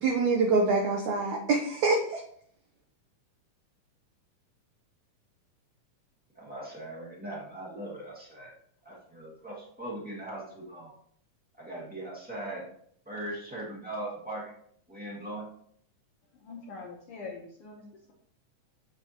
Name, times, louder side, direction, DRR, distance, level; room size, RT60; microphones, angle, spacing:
voice 1, 0.0-2.2, right 3 dB, 75° right, 0 dB, 1.9 m, -25 dB
voice 2, 6.3-8.5 8.8-10.9 11.6-12.7 13.0-14.5 14.9-15.5, right 1 dB, 10° right, -5 dB, 0.4 m, -39 dB
voice 3, 16.3-18.1, left 4 dB, 80° left, -2 dB, 1.2 m, -44 dB
7.7 x 5.9 x 2.8 m, 0.64 s
omnidirectional pair, 3.7 m